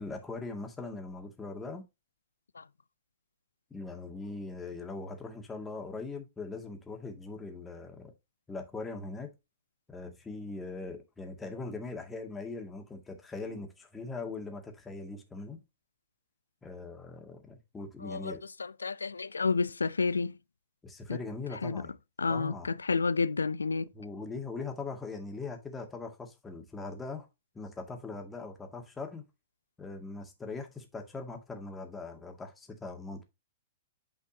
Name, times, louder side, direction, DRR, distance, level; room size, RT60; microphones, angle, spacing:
voice 1, 0.0-1.8 3.7-8.1 8.5-9.3 9.9-15.6 16.6-18.5 20.8-21.9 22.3-22.7 23.9-27.3 27.5-29.2 29.8-33.2, left 3 dB, 15° left, 1.9 m, -41 dB
voice 2, 18.0-20.3 21.1-21.2 21.6-21.8 22.2-23.9, left 4 dB, 80° left, 0.4 m, -30 dB
8.8 x 5.7 x 2.9 m
figure-of-eight pair, 105°, 0 cm